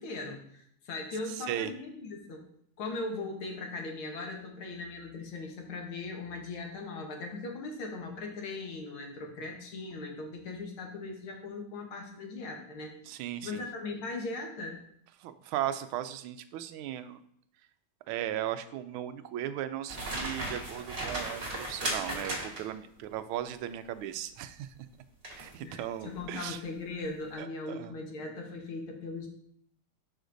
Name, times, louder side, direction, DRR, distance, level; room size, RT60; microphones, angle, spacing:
voice 1, 0.0-2.4 2.8-12.9 13.4-14.8 25.6-29.3, left 3 dB, 80° left, 1 dB, 2.1 m, -39 dB
voice 2, 1.4-1.7 13.0-13.6 15.2-17.2 18.1-24.7 25.4-26.6 27.4-27.9, right 11 dB, 85° right, 11 dB, 1.4 m, -37 dB
sound 1, 19.9-22.8 25.2-25.5 26.0-26.2, right 1 dB, 30° right, 1.9 m, -36 dB
11.0 x 5.1 x 2.6 m, 0.67 s
omnidirectional pair, 2.3 m